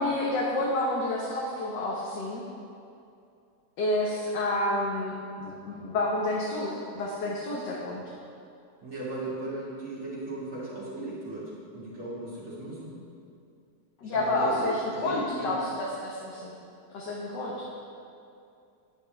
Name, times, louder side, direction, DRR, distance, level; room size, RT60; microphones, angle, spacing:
voice 1, 0.0-2.4 3.8-8.0 14.0-16.6 16.9-17.7, left 1 dB, 90° left, -4 dB, 1.7 m, -29 dB
voice 2, 8.8-13.0 14.1-15.5, right 2 dB, 45° right, -7 dB, 2.6 m, -37 dB
9.7 x 9.0 x 3.4 m, 2.5 s
omnidirectional pair, 1.8 m